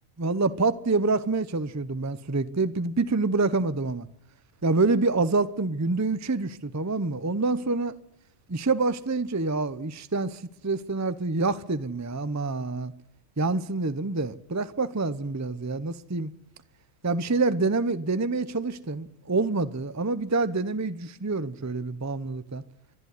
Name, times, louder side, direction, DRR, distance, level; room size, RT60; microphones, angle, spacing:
voice 1, 0.2-4.1 4.6-8.0 8.5-12.9 13.4-16.3 17.0-22.6, right 3 dB, 15° right, 0.7 m, -27 dB
25.0 x 11.0 x 9.6 m
omnidirectional pair, 1.3 m